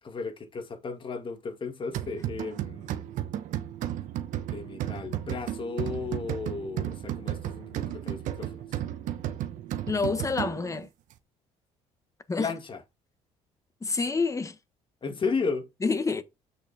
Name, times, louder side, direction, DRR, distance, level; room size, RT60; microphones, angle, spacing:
voice 1, 0.0-3.0 4.4-8.7 12.4-12.8 15.0-15.7, left 4 dB, 40° left, 2.0 m, -34 dB
sound 1, 1.9-10.8, right 12 dB, 75° right, 1.1 m, -34 dB
voice 2, 9.9-10.9 12.3-12.5 13.8-14.6 15.8-16.2, left 4 dB, 25° left, 1.4 m, -28 dB
7.8 x 6.4 x 3.5 m
supercardioid pair, 80°, 13 cm